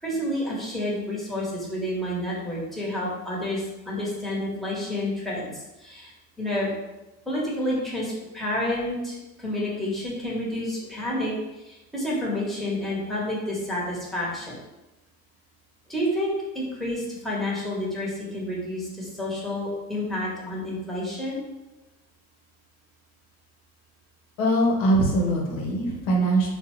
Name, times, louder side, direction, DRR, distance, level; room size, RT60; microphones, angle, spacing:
voice 1, 0.0-6.1 6.4-6.7 7.2-14.6 15.9-21.4, left 1 dB, ahead, -6 dB, 1.3 m, -29 dB
voice 2, 24.4-26.5, right 1 dB, 65° left, -2 dB, 1.0 m, -22 dB
3.5 x 2.4 x 3.1 m, 1.0 s
hypercardioid pair, 70°, 45 cm